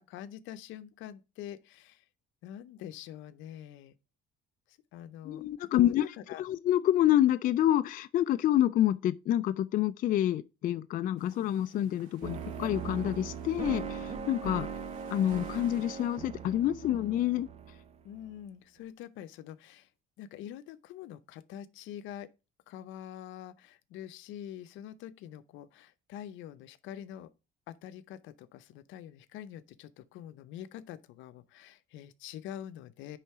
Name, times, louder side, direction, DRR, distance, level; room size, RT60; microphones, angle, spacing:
voice 1, 0.0-2.0 2.4-3.9 4.9-6.4 18.0-19.9 20.2-22.3 22.7-27.3 27.7-33.2, left 11 dB, 80° left, 0.7 m, -45 dB
voice 2, 5.3-6.1 6.4-14.7 15.1-17.5, left 12 dB, 45° left, 0.4 m, -27 dB
sound 1, 11.2-16.2, right 5 dB, 90° right, 3.1 m, -58 dB
sound 2, 12.2-18.3, right 6 dB, 35° right, 0.7 m, -40 dB
10.0 x 4.0 x 4.8 m
cardioid pair, 145°, 20 cm